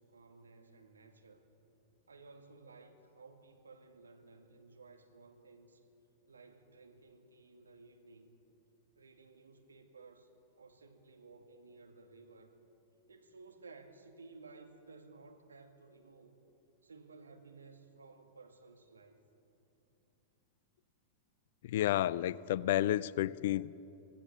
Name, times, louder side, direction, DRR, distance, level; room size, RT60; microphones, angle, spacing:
voice 1, 0.0-1.5 2.1-5.9 6.3-8.4 9.0-10.3 10.6-12.6 13.1-16.4 16.8-19.2, right 3 dB, 75° right, 4 dB, 2.2 m, -57 dB
voice 2, 21.6-23.8, left 13 dB, 55° left, 22 dB, 0.4 m, -31 dB
25.0 x 17.5 x 7.0 m, 2.9 s
figure-of-eight pair, 95°, 0 cm